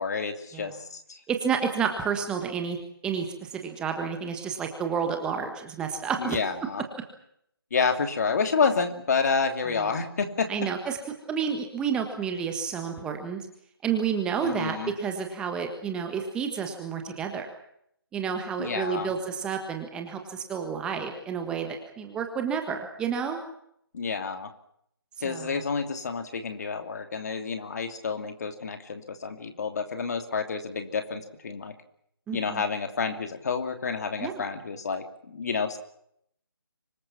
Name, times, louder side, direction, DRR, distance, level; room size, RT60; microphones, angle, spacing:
voice 1, 0.0-1.2 6.2-6.8 7.7-10.5 14.4-14.9 18.6-19.1 23.9-24.5 25.2-31.7 32.3-35.8, left 5 dB, 40° left, 7 dB, 2.8 m, -29 dB
voice 2, 1.3-2.8 3.0-6.4 10.5-11.0 11.3-13.4 13.8-17.5 18.1-23.4 25.2-25.5 32.3-32.6 34.2-34.4, right 6 dB, 5° right, 5 dB, 1.5 m, -30 dB
25.0 x 20.0 x 7.3 m, 0.72 s
figure-of-eight pair, 160°, 13 cm